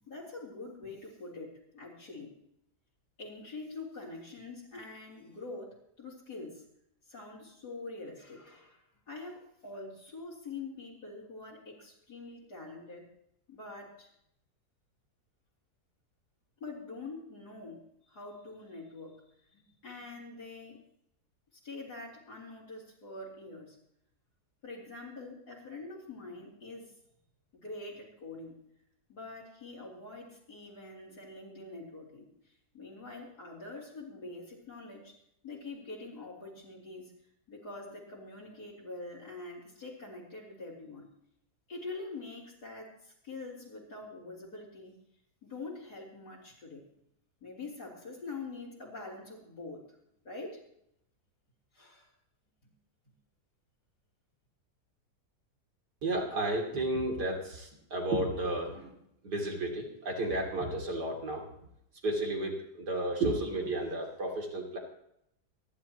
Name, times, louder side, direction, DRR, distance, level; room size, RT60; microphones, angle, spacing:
voice 1, 0.0-2.3 3.2-6.6 7.1-8.8 9.1-13.1 13.5-14.1 16.6-19.2 19.5-20.8 21.6-23.8 24.6-26.9 27.5-28.6 29.1-32.2 32.7-35.2 35.4-37.1 37.5-41.1 41.7-45.0 45.4-46.9 47.4-49.9 50.2-50.6 51.7-52.1, left 3 dB, 75° left, -5 dB, 4.6 m, -45 dB
voice 2, 56.0-58.9 59.2-61.5 62.0-64.8, right 1 dB, 85° right, 1 dB, 3.5 m, -32 dB
27.0 x 11.0 x 3.0 m, 0.74 s
omnidirectional pair, 1.7 m